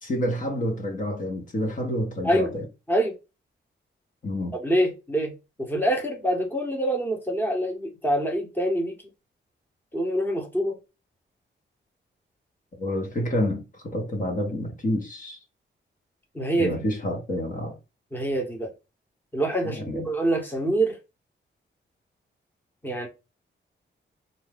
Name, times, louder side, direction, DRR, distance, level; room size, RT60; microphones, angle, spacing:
voice 1, 0.0-2.6 4.2-4.5 12.8-15.4 16.6-17.8 19.6-20.1, left 1 dB, 40° left, 1.4 m, -28 dB
voice 2, 2.2-2.6 2.9-3.1 4.6-5.3 5.6-8.9 9.9-10.8 16.3-16.8 18.1-18.7 19.3-21.0 22.8-23.1, right 1 dB, 10° left, 1.3 m, -25 dB
4.4 x 2.8 x 3.6 m
wide cardioid pair, 145°, 20 cm